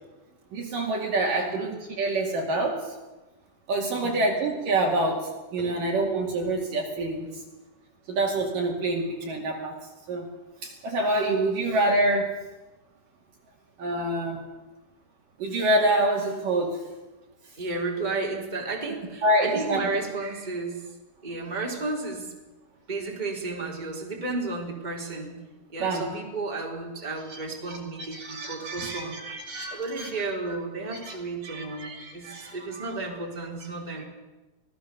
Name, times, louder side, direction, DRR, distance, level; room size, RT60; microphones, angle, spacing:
voice 1, 0.5-2.9 3.7-7.3 8.1-9.8 10.1-10.3 10.6-12.3 13.8-14.4 15.4-16.8 19.2-19.9 25.8-26.1 27.3-27.4 27.7-27.8 28.1-30.1 31.0-31.2 31.4-32.9, right 2 dB, 55° right, 1 dB, 3.7 m, -26 dB
voice 2, 3.9-4.2 5.6-5.7 17.6-20.8 21.2-22.3 22.9-25.4 25.7-29.2 29.7-34.1, right 3 dB, 10° right, -1 dB, 3.5 m, -33 dB
26.0 x 18.5 x 7.0 m, 1.1 s
omnidirectional pair, 4.9 m